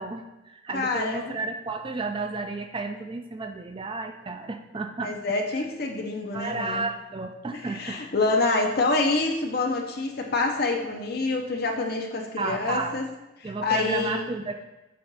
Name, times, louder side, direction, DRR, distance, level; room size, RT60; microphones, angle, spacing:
voice 1, 0.0-5.1 6.3-8.0 12.4-13.0 13.4-14.6, right 3 dB, 25° right, 6 dB, 0.3 m, -32 dB
voice 2, 0.7-1.3 5.0-6.8 7.5-13.0 13.4-14.2, left 3 dB, 50° left, 2 dB, 0.8 m, -27 dB
7.6 x 2.5 x 5.5 m, 1.0 s
head